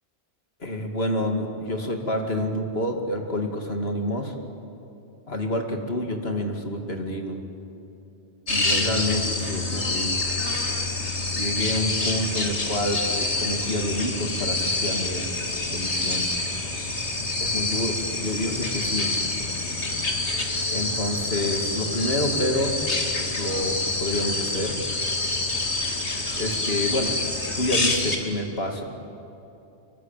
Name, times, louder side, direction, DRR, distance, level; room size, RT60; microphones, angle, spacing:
voice 1, 0.6-4.4 5.3-7.4 8.5-10.2 11.4-15.3 15.7-16.3 17.4-19.1 20.7-22.8 23.3-24.8 26.4-27.2 27.6-28.9, left 1 dB, 65° left, 3 dB, 2.8 m, -28 dB
sound 1, 8.5-28.2, left 2 dB, 80° left, 2.9 m, -27 dB
26.0 x 23.5 x 9.2 m, 2.8 s
omnidirectional pair, 1.2 m